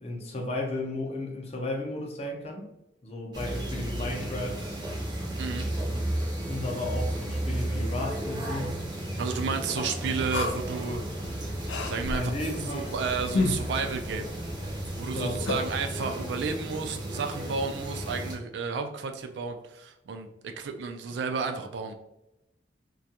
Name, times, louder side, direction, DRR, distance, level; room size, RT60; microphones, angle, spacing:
voice 1, 0.0-2.7 3.0-4.6 5.9-8.8 9.7-9.9 12.1-13.0 15.1-15.6, left 1 dB, 35° left, 0 dB, 0.5 m, -34 dB
sound 1, 3.3-18.4, right 1 dB, 25° right, 0.5 m, -33 dB
voice 2, 5.4-5.7 9.2-11.0 11.8-12.2 12.7-14.3 15.0-20.3 20.6-21.9, right 5 dB, 75° right, 6 dB, 0.3 m, -32 dB
sound 2, 10.3-15.8, left 3 dB, 85° left, 0.4 m, -34 dB
2.3 x 2.2 x 2.7 m, 0.90 s
head